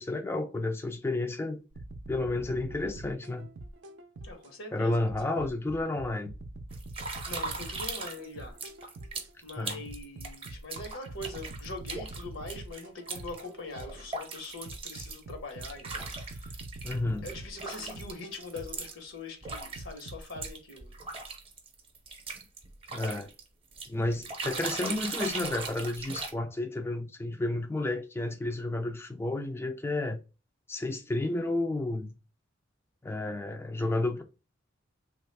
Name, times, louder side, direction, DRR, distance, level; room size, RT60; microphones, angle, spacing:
voice 1, 0.0-1.6 2.1-3.5 4.7-6.3 9.6-9.8 16.8-17.3 22.9-23.3 23.9-30.2 30.7-32.1 33.0-34.2, left 2 dB, 15° left, 0.3 m, -31 dB
sound 1, 1.7-4.5 5.1-9.3 9.9-14.1 14.7-18.9 19.5-20.5, right 2 dB, 65° right, 0.5 m, -44 dB
voice 2, 4.2-5.5 7.3-8.6 9.4-16.6 17.2-20.9, left 3 dB, 85° left, 1.1 m, -42 dB
sound 2, 6.7-8.3 8.6-17.0 17.2-18.9 19.4-23.4 23.7-26.3, right 4 dB, 30° right, 0.7 m, -39 dB
3.2 x 2.4 x 3.3 m
head